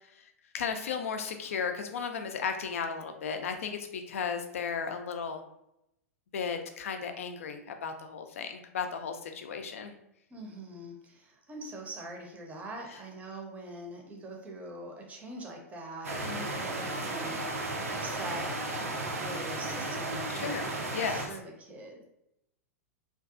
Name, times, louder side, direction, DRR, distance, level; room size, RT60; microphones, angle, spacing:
voice 1, 0.5-5.4 6.3-10.0 16.2-16.6 20.3-20.7 20.9-21.3, left 6 dB, 65° left, 6 dB, 0.4 m, -35 dB
voice 2, 10.3-17.4 17.9-22.0, right 1 dB, 15° right, 0 dB, 0.6 m, -43 dB
sound 1, 16.0-21.3, right 2 dB, 75° right, 0.5 m, -34 dB
2.5 x 2.3 x 2.4 m, 0.82 s
figure-of-eight pair, 100°, 8 cm